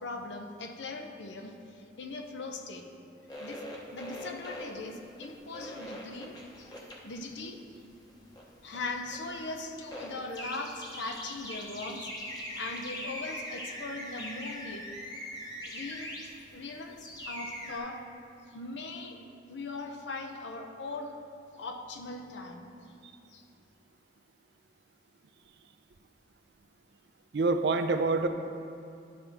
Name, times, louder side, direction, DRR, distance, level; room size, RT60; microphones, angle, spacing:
voice 1, 0.0-2.9 3.4-3.7 3.9-6.7 7.0-7.6 8.6-12.1 12.5-14.9 15.7-16.2 16.5-18.1 18.5-19.2 19.5-21.2 21.5-22.7 23.3-23.5, left 3 dB, 80° left, 4 dB, 0.7 m, -40 dB
sound 1, 3.3-17.8, equal, 20° left, 0.9 m, -42 dB
voice 2, 27.3-28.3, right 3 dB, 70° right, 8 dB, 0.5 m, -26 dB
12.0 x 5.5 x 3.5 m, 2.5 s
head